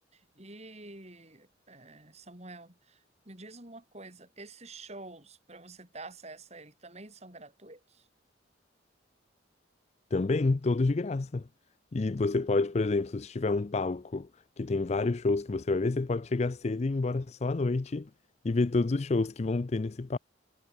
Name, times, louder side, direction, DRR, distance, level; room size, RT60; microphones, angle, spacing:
voice 1, 0.1-8.0 12.4-12.6, right 2 dB, 35° right, 4.6 m, -48 dB
voice 2, 10.1-11.5 11.9-14.3 14.6-18.1 18.4-20.2, left 3 dB, 35° left, 0.4 m, -28 dB
head